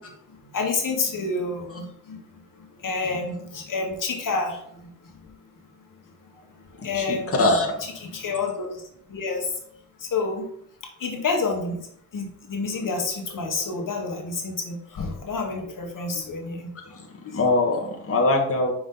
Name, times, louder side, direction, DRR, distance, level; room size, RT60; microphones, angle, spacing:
voice 1, 0.5-2.2 2.8-4.6 6.8-7.5 8.1-8.8 9.1-9.5 10.1-10.4 11.0-11.8 12.1-16.7 17.2-17.4, left 3 dB, 75° left, 1 dB, 1.3 m, -28 dB
voice 2, 6.9-7.8 17.3-18.7, left 2 dB, 45° left, -1 dB, 1.3 m, -22 dB
5.6 x 4.7 x 3.7 m, 0.70 s
cardioid pair, 80°, 33 cm